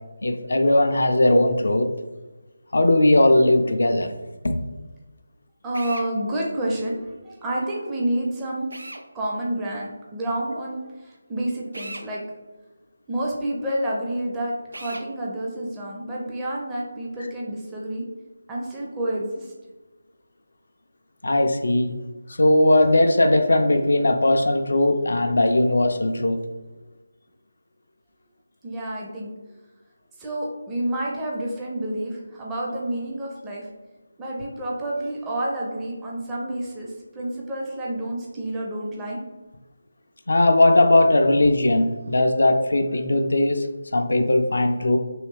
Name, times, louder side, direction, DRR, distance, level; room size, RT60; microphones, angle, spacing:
voice 1, 0.2-1.9 2.7-4.1 4.4-4.6 21.2-21.9 22.4-26.4 40.3-43.7 43.9-45.0, left 1 dB, 60° left, 6 dB, 0.4 m, -19 dB
voice 2, 5.6-8.7 9.1-12.2 13.1-18.0 18.5-19.5 28.6-29.3 30.2-33.7 34.2-39.2, right 1 dB, 10° right, -4 dB, 0.4 m, -29 dB
Drill, 5.7-6.1 8.7-9.1 11.7-12.1 14.7-15.1, right 1 dB, 65° right, 0.4 m, -37 dB
3.1 x 2.8 x 3.2 m, 1.2 s
figure-of-eight pair, 155°, 0 cm